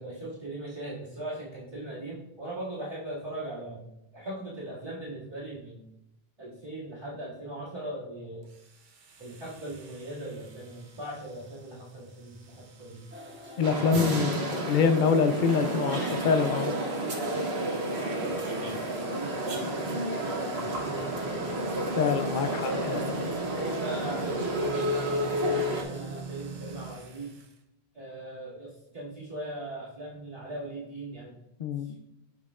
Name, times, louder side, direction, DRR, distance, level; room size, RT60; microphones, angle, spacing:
voice 1, 0.0-3.9 4.1-5.8 6.4-8.5 9.2-13.0 13.6-14.1 16.5-21.7 22.6-27.4 27.9-31.4 31.8-32.0, right 1 dB, 35° right, -9 dB, 2.3 m, -40 dB
sound 1, 8.4-27.5, right 4 dB, 55° right, 0.8 m, -45 dB
sound 2, 13.1-26.2, left 1 dB, 15° right, 0.6 m, -46 dB
voice 2, 13.6-16.7 22.0-23.2 31.6-32.0, left 6 dB, 60° left, 9 dB, 0.6 m, -25 dB
sound 3, 13.6-25.8, right 1 dB, 80° right, 1.3 m, -31 dB
7.3 x 6.3 x 2.4 m, 0.87 s
omnidirectional pair, 1.1 m